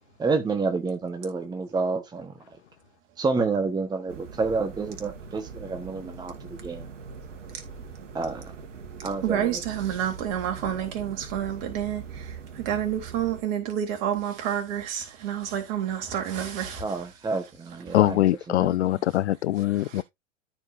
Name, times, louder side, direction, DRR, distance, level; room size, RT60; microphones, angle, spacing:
voice 1, 0.2-2.6 3.2-6.9 8.1-8.5 9.0-9.6 16.8-18.9, right 4 dB, 10° right, 1.3 m, -29 dB
sound 1, 4.1-13.4, right 5 dB, 65° right, 2.1 m, -42 dB
voice 2, 9.2-12.0 12.7-16.8, right 10 dB, 45° right, 3.8 m, -29 dB
voice 3, 17.9-20.0, left 14 dB, 60° left, 0.5 m, -23 dB
13.5 x 5.5 x 2.7 m
figure-of-eight pair, 105°, 39 cm